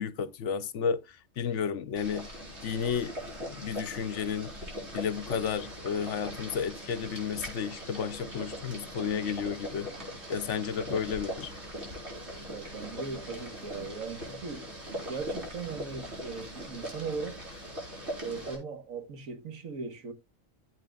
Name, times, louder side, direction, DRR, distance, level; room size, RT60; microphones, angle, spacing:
voice 1, 0.0-2.3 2.6-3.1 3.4-4.5 4.9-9.9 10.3-11.5, left 7 dB, 65° left, 0.9 m, -32 dB
Boiling, 2.0-18.6, equal, 55° right, 4.7 m, -40 dB
voice 2, 12.5-14.7 15.1-17.4 18.2-20.1, right 5 dB, 80° right, 1.7 m, -38 dB
14.5 x 8.1 x 2.3 m
omnidirectional pair, 1.4 m